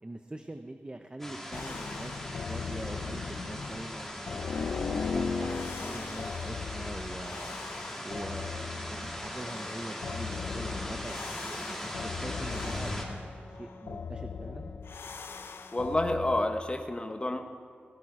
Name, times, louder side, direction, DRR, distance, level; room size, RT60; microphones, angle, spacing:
voice 1, 0.0-4.5 5.1-7.6 8.0-14.7, right 2 dB, 25° right, 6 dB, 0.8 m, -43 dB
sound 1, 1.2-13.0, equal, 5° left, 3.2 m, -40 dB
sound 2, 1.5-16.4, left 5 dB, 90° left, 0.7 m, -38 dB
Wind instrument woodwind instrument, 9.4-15.9, left 2 dB, 50° left, 2.5 m, -53 dB
voice 2, 15.7-17.4, left 1 dB, 25° left, 5 dB, 1.1 m, -29 dB
17.5 x 16.5 x 4.9 m, 2.1 s
wide cardioid pair, 65°, 4 cm